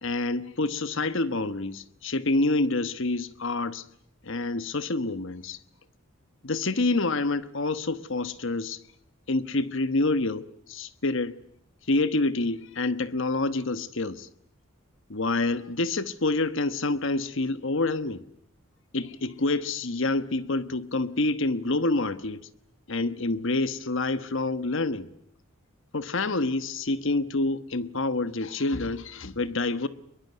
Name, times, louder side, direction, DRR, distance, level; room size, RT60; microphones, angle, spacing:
voice 1, 0.0-3.8 4.2-5.6 6.4-8.8 9.3-11.4 11.9-14.3 15.1-18.2 18.9-22.5 22.9-25.1 25.9-29.9, left 2 dB, 60° left, 1.2 m, -27 dB
23.0 x 22.5 x 9.4 m
head